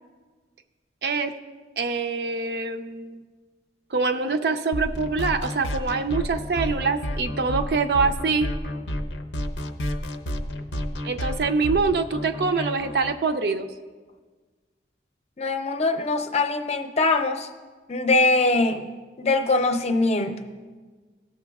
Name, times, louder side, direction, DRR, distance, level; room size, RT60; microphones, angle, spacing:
voice 1, 1.0-1.3 1.8-3.2 3.9-8.5 11.0-13.7, right 4 dB, 65° right, 7 dB, 0.5 m, -25 dB
sound 1, 4.7-13.1, equal, 90° left, 0.7 m, -30 dB
voice 2, 15.4-17.5 17.9-18.9 19.2-20.4, left 3 dB, 35° left, 6 dB, 0.6 m, -22 dB
18.0 x 6.9 x 2.3 m, 1.4 s
head